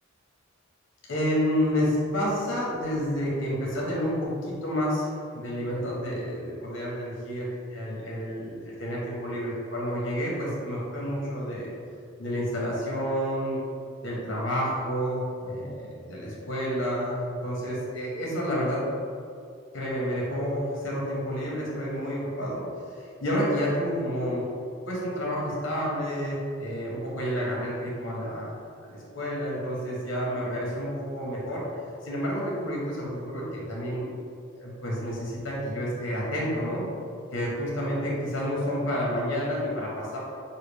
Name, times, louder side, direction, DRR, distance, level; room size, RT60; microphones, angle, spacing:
voice 1, 1.1-11.7 12.2-13.6 14.0-19.1 19.7-22.6 23.2-24.5 24.8-31.6 32.0-34.1 34.5-36.9 37.3-40.2, equal, 60° left, -4 dB, 1.2 m, -29 dB
5.6 x 2.3 x 3.4 m, 2.4 s
head